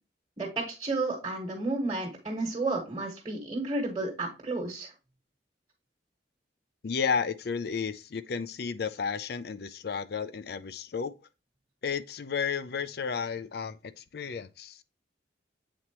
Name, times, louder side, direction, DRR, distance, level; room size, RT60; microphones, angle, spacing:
voice 1, 0.4-4.9, right 2 dB, 25° right, 1.5 m, -32 dB
voice 2, 6.8-11.1 11.8-14.8, left 6 dB, 60° left, 0.4 m, -32 dB
7.7 x 4.2 x 2.9 m
head